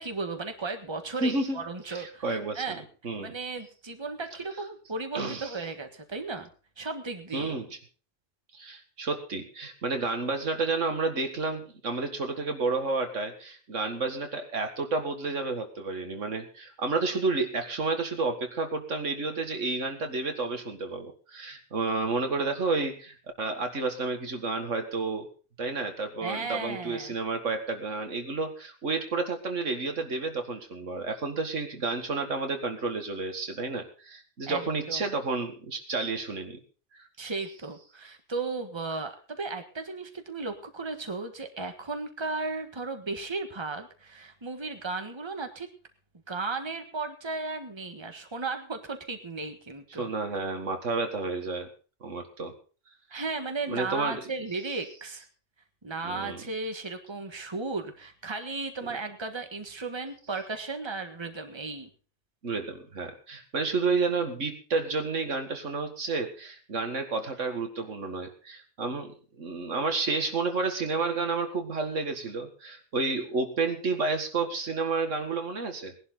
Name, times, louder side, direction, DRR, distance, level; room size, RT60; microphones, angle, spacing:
voice 1, 0.0-2.8 3.2-6.5 6.8-7.5 26.2-27.1 34.5-35.1 37.2-45.7 46.3-50.1 53.1-55.2 55.8-61.9, right 3 dB, 20° right, 6 dB, 1.5 m, -35 dB
voice 2, 1.2-1.6 1.9-2.8 3.0-3.3 5.1-5.5 7.3-7.7 8.5-25.3 25.6-36.6 37.0-37.1 50.0-51.7 52.0-52.5 53.7-54.3 56.0-56.5 62.4-75.9, right 3 dB, 90° right, 6 dB, 2.3 m, -31 dB
19.0 x 11.0 x 4.0 m, 0.36 s
omnidirectional pair, 1.2 m